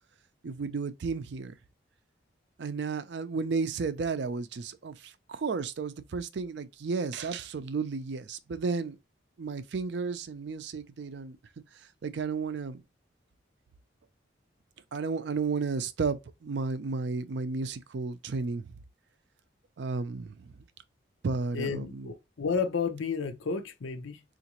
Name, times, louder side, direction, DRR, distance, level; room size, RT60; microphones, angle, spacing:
voice 1, 0.4-1.5 2.6-9.0 9.4-11.4 12.0-12.8 14.9-18.6 19.8-20.5 21.2-22.1, right 4 dB, 65° right, 0.4 m, -33 dB
voice 2, 21.5-24.2, left 5 dB, 85° left, 0.6 m, -32 dB
3.8 x 2.5 x 2.9 m
head